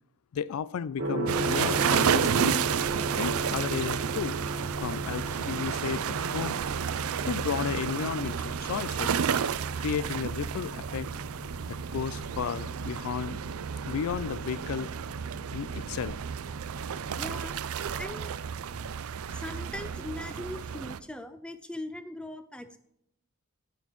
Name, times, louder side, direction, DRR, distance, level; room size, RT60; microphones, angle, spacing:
voice 1, 0.3-2.6 3.2-4.4 4.8-6.5 7.3-9.2 9.8-11.1 11.7-13.4 13.9-14.9 15.5-16.2, left 7 dB, 80° left, 19 dB, 0.4 m, -33 dB
Gong, 1.0-18.9, right 1 dB, 65° right, 1.6 m, -38 dB
sound 1, 1.3-21.0, right 7 dB, 80° right, 0.4 m, -31 dB
voice 2, 17.2-17.6 18.0-18.3 18.7-19.0 19.3-22.8, left 1 dB, 5° left, 9 dB, 0.6 m, -40 dB
10.5 x 9.2 x 3.1 m, 0.77 s
head